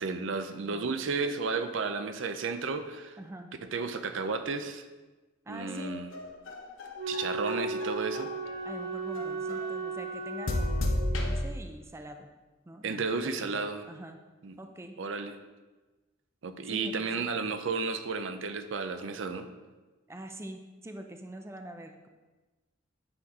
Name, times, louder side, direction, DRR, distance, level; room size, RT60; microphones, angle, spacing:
voice 1, 0.0-3.2 3.7-4.8 5.5-6.1 7.1-8.3 12.8-13.8 14.4-14.6 15.0-15.3 16.4-19.5, right 4 dB, 75° right, 9 dB, 0.5 m, -33 dB
voice 2, 0.6-0.9 3.2-3.5 5.5-6.0 8.6-12.3 12.6-14.2 14.6-15.0 16.6-17.3 20.1-22.1, right 1 dB, 15° right, 6 dB, 0.5 m, -44 dB
sound 1, 5.6-8.6 9.1-9.7 10.5-11.4, left 1 dB, 85° left, 0.8 m, -33 dB
Wind instrument woodwind instrument, 6.9-11.4, right 3 dB, 55° right, 2.1 m, -36 dB
8.7 x 4.1 x 4.7 m, 1.2 s
head